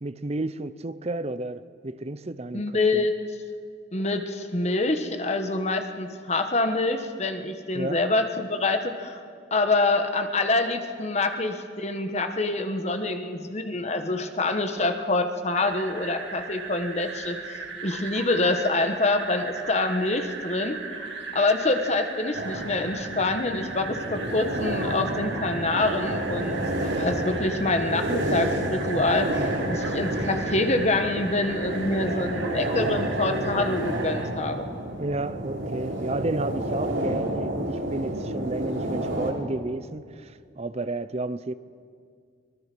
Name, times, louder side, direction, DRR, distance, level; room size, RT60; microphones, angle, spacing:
voice 1, 0.0-3.1 7.7-8.0 35.0-41.5, right 2 dB, 35° right, 0.6 m, -32 dB
voice 2, 2.5-3.1 3.9-9.2 9.5-21.0 21.3-34.7, left 2 dB, 35° left, 1.3 m, -26 dB
sound 1, 15.5-34.3, right 4 dB, 70° right, 2.1 m, -38 dB
sound 2, 22.3-39.3, right 1 dB, 85° right, 3.1 m, -30 dB
25.0 x 18.5 x 6.1 m
head